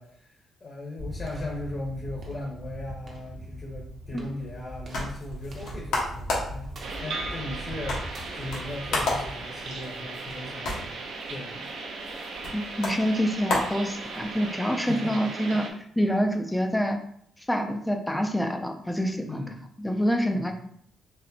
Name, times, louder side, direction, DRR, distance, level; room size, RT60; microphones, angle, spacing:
voice 1, 0.0-6.7 7.0-10.9 11.3-11.7 14.8-15.6 19.3-19.6 20.3-20.5, left 2 dB, 30° left, -3 dB, 0.8 m, -38 dB
sound 1, 1.0-10.1, right 1 dB, 40° right, 0.7 m, -40 dB
sound 2, 4.5-14.5, left 2 dB, 85° left, 1.3 m, -34 dB
sound 3, 6.8-15.7, right 3 dB, 75° right, 0.7 m, -37 dB
voice 2, 12.5-15.7 16.0-17.0 17.5-19.4 19.8-20.5, equal, 5° left, 5 dB, 0.4 m, -26 dB
4.2 x 3.1 x 2.7 m, 0.65 s
cardioid pair, 155°, 0 cm